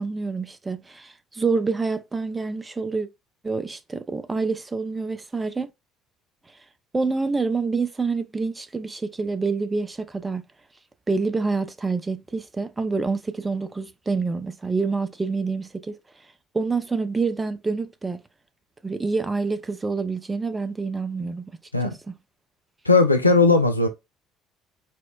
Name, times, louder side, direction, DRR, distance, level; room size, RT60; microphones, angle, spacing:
voice 1, 0.0-3.1 3.4-5.7 6.9-10.4 11.1-16.0 16.5-18.2 18.8-21.5 21.8-22.2, right 4 dB, 20° right, 0.5 m, -27 dB
voice 2, 22.9-23.9, left 3 dB, 90° left, 0.3 m, -17 dB
4.2 x 2.0 x 2.3 m
figure-of-eight pair, 55°, 0 cm